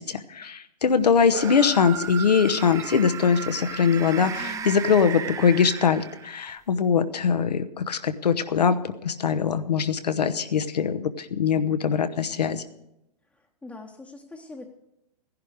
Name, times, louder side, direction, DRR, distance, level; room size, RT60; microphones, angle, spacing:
voice 1, 0.0-12.6, left 6 dB, 80° left, 10 dB, 1.0 m, -22 dB
sound 1, 1.3-6.5, right 8 dB, 15° right, 0.7 m, -35 dB
voice 2, 4.2-4.8 13.3-14.7, left 2 dB, 5° left, -1 dB, 1.0 m, -43 dB
16.0 x 11.0 x 4.9 m, 0.87 s
hypercardioid pair, 115°, 21 cm